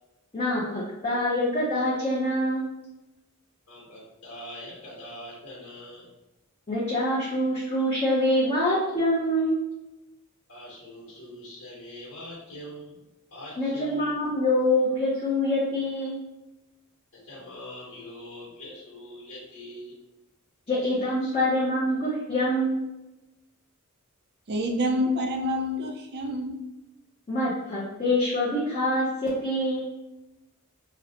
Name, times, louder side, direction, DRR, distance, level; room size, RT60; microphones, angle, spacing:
voice 1, 0.3-2.7 6.7-9.6 13.6-16.1 20.7-22.8 27.3-29.8, left 1 dB, 25° left, -7 dB, 0.6 m, -25 dB
voice 2, 3.7-6.1 10.5-13.0 13.3-14.1 17.1-19.9 20.8-21.3, left 1 dB, 70° left, -6 dB, 1.2 m, -43 dB
voice 3, 24.5-26.6, equal, 50° right, 3 dB, 0.4 m, -27 dB
4.1 x 2.0 x 2.7 m, 1.0 s
head